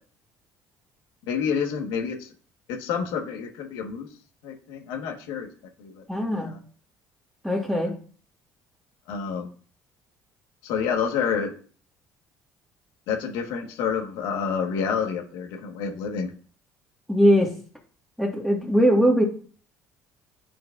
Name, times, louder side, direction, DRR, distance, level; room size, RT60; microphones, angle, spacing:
voice 1, 1.3-2.3 2.7-4.1 4.4-5.5 5.8-6.6 9.1-9.5 10.6-11.5 13.1-16.3, left 6 dB, 80° left, 2 dB, 1.5 m, -28 dB
voice 2, 6.1-6.5 7.4-8.0 17.1-17.5 18.2-19.2, equal, ahead, -1 dB, 1.8 m, -20 dB
9.0 x 4.7 x 2.6 m, 0.42 s
supercardioid pair, 80°, 7 cm